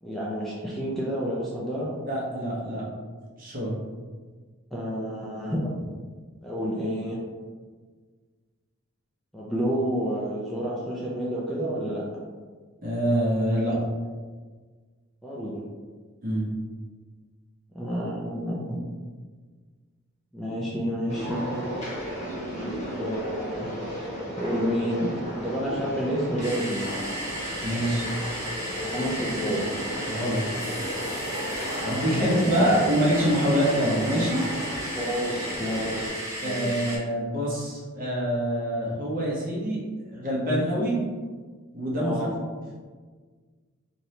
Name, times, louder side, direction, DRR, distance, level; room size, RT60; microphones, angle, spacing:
voice 1, 0.0-2.0 4.7-5.8 6.4-7.2 9.3-12.1 15.2-15.6 17.7-18.8 20.3-21.5 22.6-23.8 24.3-25.1 25.4-26.9 28.8-29.6 32.1-32.9 35.0-36.1 36.4-36.8 42.0-42.3, equal, ahead, -7 dB, 0.4 m, -29 dB
voice 2, 2.1-2.8 3.4-3.7 12.8-13.8 16.2-16.4 27.6-28.1 30.1-30.4 31.8-34.4 36.4-39.8 40.1-41.0 41.7-42.3, equal, 40° right, -6 dB, 0.9 m, -25 dB
sound 1, 21.1-36.1, equal, 35° left, 1.0 m, -34 dB
sound 2, 26.4-37.0, equal, 15° right, 0.9 m, -34 dB
3.1 x 2.6 x 2.8 m, 1.5 s
head